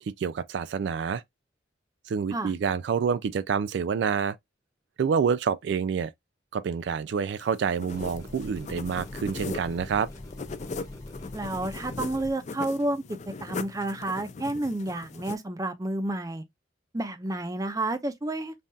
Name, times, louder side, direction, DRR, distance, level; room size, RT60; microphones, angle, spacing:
voice 1, 0.2-1.2 2.1-4.4 5.0-6.1 6.5-10.1, right 6 dB, 70° right, 0.3 m, -27 dB
sound 1, 7.4-15.4, left 4 dB, 40° left, 0.4 m, -40 dB
sound 2, 7.9-12.3, left 1 dB, 20° left, 1.0 m, -42 dB
voice 2, 11.3-13.0 13.4-16.4 16.9-18.6, right 1 dB, 20° right, 0.5 m, -30 dB
5.4 x 2.4 x 2.6 m
head